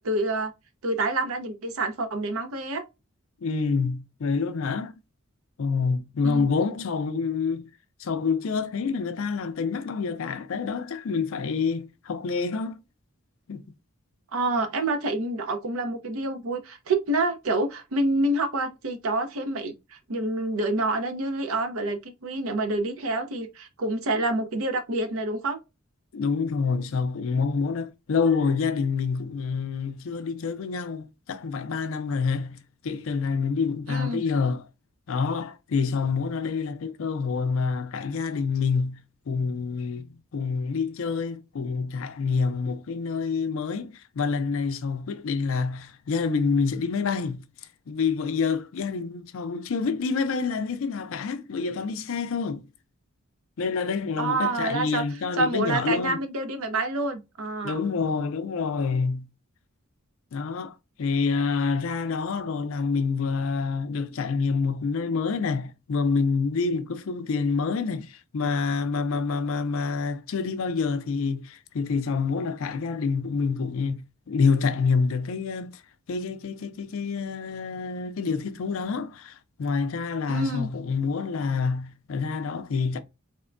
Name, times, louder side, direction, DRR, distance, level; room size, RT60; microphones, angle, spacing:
voice 1, 0.0-0.5 0.8-2.8 6.2-6.5 14.3-25.6 33.9-34.2 54.2-55.0 55.4-57.8 80.3-80.7, right 2 dB, 75° right, 0.6 m, -27 dB
voice 2, 3.4-5.0 5.6-7.7 8.0-12.8 13.5-13.6 26.1-34.7 35.1-39.0 39.3-47.4 47.9-52.7 53.6-56.2 57.6-59.3 60.3-75.8 76.1-83.0, left 5 dB, 65° left, 0.4 m, -27 dB
3.5 x 2.1 x 2.4 m
head